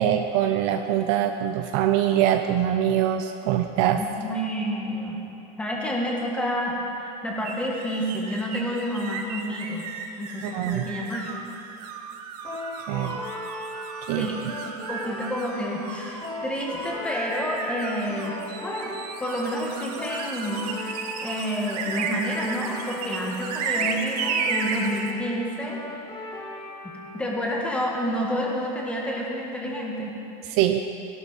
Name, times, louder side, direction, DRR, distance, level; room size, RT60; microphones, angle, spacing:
voice 1, 0.0-4.0 10.4-10.9 12.9-13.2 14.1-14.3 30.4-30.8, right 11 dB, 45° right, 7 dB, 0.4 m, -23 dB
voice 2, 4.0-5.2 5.6-9.9 10.2-11.3 14.2-18.3 18.6-18.9 19.2-20.6 21.2-25.8 26.8-30.1, equal, 5° left, -2 dB, 1.4 m, -29 dB
sound 1, 7.4-25.1, right 5 dB, 80° right, 1.2 m, -34 dB
sound 2, 12.4-27.3, left 2 dB, 30° left, 3.2 m, -37 dB
16.5 x 12.0 x 4.1 m, 2.9 s
supercardioid pair, 175°, 20 cm